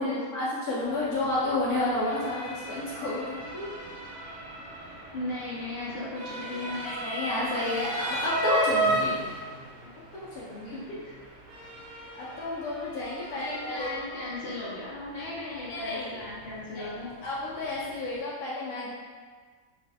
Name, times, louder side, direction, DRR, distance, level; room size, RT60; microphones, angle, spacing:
voice 1, 0.0-3.7 6.7-9.2 10.1-10.8 12.1-13.9 15.1-16.1 16.7-16.9 17.2-18.9, left 2 dB, 85° left, -7 dB, 1.1 m, -31 dB
Motor vehicle (road) / Siren, 0.8-18.2, right 1 dB, 90° right, 1.2 m, -36 dB
voice 2, 4.8-6.8 10.7-11.1 13.4-17.1, left 2 dB, 60° left, -7 dB, 0.7 m, -37 dB
3.2 x 2.4 x 2.5 m, 1.5 s
omnidirectional pair, 1.5 m